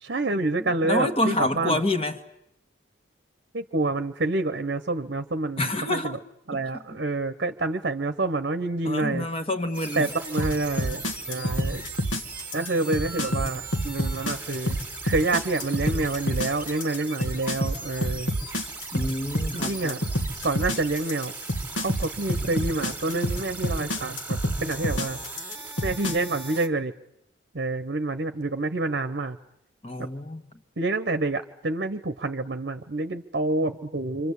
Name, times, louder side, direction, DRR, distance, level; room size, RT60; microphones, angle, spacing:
voice 1, 0.0-1.8 3.5-6.2 6.5-9.2 9.9-11.9 12.5-14.8 15.0-18.3 19.5-20.0 20.4-21.3 21.8-25.2 25.8-26.9 27.5-29.4 30.8-34.3, right 2 dB, 55° right, 1.0 m, -28 dB
voice 2, 0.6-2.2 5.6-6.2 6.5-6.8 8.8-10.1 18.9-20.0 29.8-30.5, left 1 dB, 30° left, 1.7 m, -28 dB
sound 1, 9.7-26.7, right 3 dB, 10° right, 2.1 m, -39 dB
sound 2, 10.4-26.1, equal, 70° left, 2.2 m, -27 dB
27.0 x 25.5 x 8.4 m
head